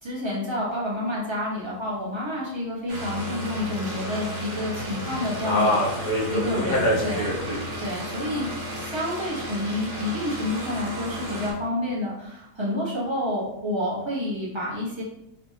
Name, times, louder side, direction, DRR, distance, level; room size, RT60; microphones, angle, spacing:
voice 1, 0.0-5.8 6.3-7.3 7.8-8.5 8.7-15.0, left 1 dB, 25° right, -7 dB, 1.1 m, -29 dB
sound 1, 2.9-11.5, equal, 50° right, 1.2 m, -33 dB
voice 2, 5.4-7.8, equal, 40° left, -6 dB, 1.2 m, -25 dB
3.4 x 3.2 x 2.7 m, 0.82 s
omnidirectional pair, 1.3 m